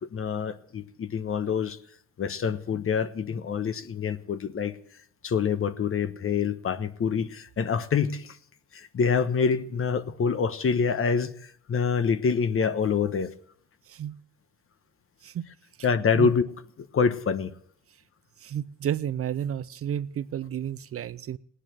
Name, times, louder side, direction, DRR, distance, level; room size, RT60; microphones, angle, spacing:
voice 1, 0.1-1.8 2.2-4.8 5.2-8.4 8.7-13.3 15.8-16.4 16.8-17.5, left 6 dB, 45° left, 11 dB, 1.2 m, -26 dB
voice 2, 18.4-21.4, right 9 dB, 50° right, 16 dB, 0.6 m, -31 dB
18.0 x 9.9 x 7.8 m, 0.63 s
cardioid pair, 90°, 30 cm